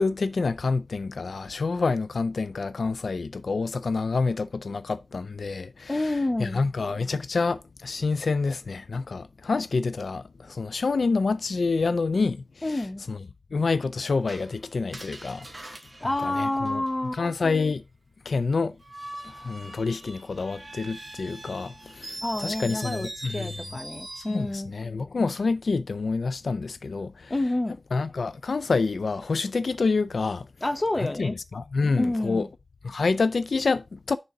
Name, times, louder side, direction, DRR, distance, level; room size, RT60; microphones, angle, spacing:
voice 1, 0.0-6.1 6.4-12.8 13.1-13.2 13.5-15.5 16.2-16.8 17.1-17.8 18.3-18.8 19.2-23.5 24.2-27.3 27.9-30.5 31.0-32.5 32.8-34.2, left 4 dB, 80° left, 0.3 m, -27 dB
voice 2, 5.9-6.6 12.6-13.0 16.0-17.2 22.2-24.7 27.3-27.8 30.6-31.4 32.0-32.5, left 2 dB, 25° left, 1.0 m, -28 dB
Screech, 14.3-17.2 18.8-24.5, right 1 dB, 30° right, 2.0 m, -42 dB
6.7 x 3.7 x 5.8 m
wide cardioid pair, 85°, 0 cm